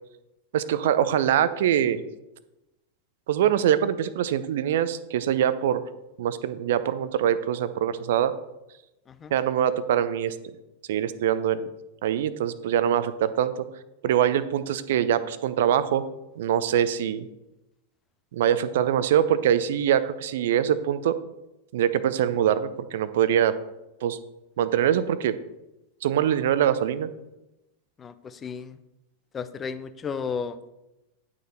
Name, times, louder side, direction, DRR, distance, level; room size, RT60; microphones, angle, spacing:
voice 1, 0.5-2.0 3.3-5.8 6.2-8.3 9.3-10.4 10.9-11.7 12.0-13.5 14.0-16.0 16.4-17.3 18.3-21.2 21.7-23.5 24.0-24.2 24.6-25.4 26.0-27.1, right 10 dB, 55° right, 14 dB, 0.6 m, -23 dB
voice 2, 28.0-28.8 29.3-30.6, left 6 dB, 20° left, 12 dB, 0.7 m, -33 dB
10.5 x 6.4 x 4.3 m, 0.94 s
figure-of-eight pair, 90°, 0 cm